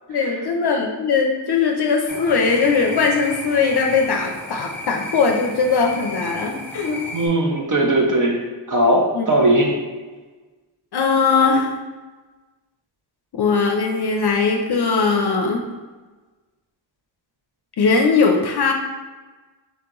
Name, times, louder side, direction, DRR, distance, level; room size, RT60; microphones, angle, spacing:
voice 1, 0.1-7.0 9.1-9.3 10.9-11.7 13.3-15.6 17.8-18.7, left 4 dB, 60° left, 2 dB, 0.5 m, -19 dB
sound 1, 2.1-7.3, left 1 dB, 5° left, 0.8 m, -33 dB
voice 2, 7.1-8.4 8.7-9.7, right 1 dB, 45° right, 0 dB, 0.7 m, -18 dB
4.1 x 2.9 x 3.7 m, 1.3 s
wide cardioid pair, 110°, 44 cm